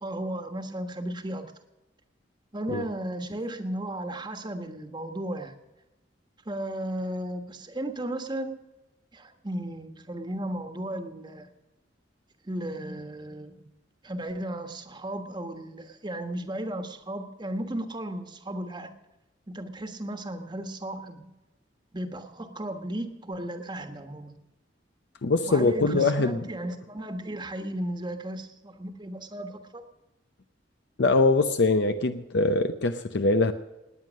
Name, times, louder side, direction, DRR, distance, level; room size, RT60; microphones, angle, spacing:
voice 1, 0.0-1.5 2.5-5.5 6.4-8.5 9.1-11.5 12.4-13.7 14.0-18.9 19.5-21.3 21.9-24.3 25.5-29.8, right 1 dB, 25° right, 7 dB, 1.4 m, -35 dB
voice 2, 25.2-26.3 31.0-33.5, left 3 dB, 65° left, 9 dB, 0.7 m, -23 dB
19.0 x 9.3 x 6.3 m, 1.0 s
head